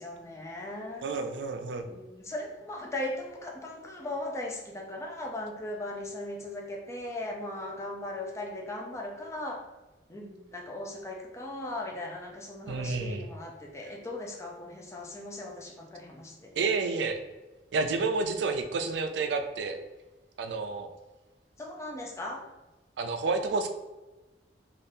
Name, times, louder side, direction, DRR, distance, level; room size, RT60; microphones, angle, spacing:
voice 1, 0.0-1.1 1.9-9.6 10.1-16.5 21.6-22.4, left 1 dB, 15° left, 0 dB, 0.5 m, -38 dB
voice 2, 1.0-1.8 12.7-13.3 16.6-17.2 17.7-19.8 20.4-20.9 23.0-23.7, right 4 dB, 80° right, 6 dB, 0.4 m, -30 dB
3.4 x 2.4 x 2.7 m, 1.1 s
head